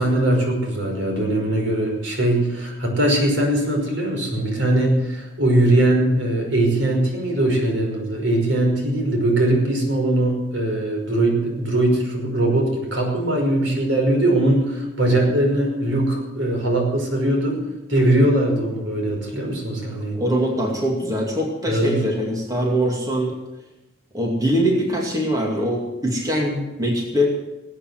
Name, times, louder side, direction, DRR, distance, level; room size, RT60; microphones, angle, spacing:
voice 1, 0.0-17.6 17.9-20.2 21.7-22.0, right 1 dB, 80° right, 1 dB, 5.4 m, -20 dB
voice 2, 19.9-23.3 24.1-27.3, equal, 20° right, -1 dB, 2.4 m, -22 dB
18.5 x 8.8 x 8.0 m, 1.0 s
head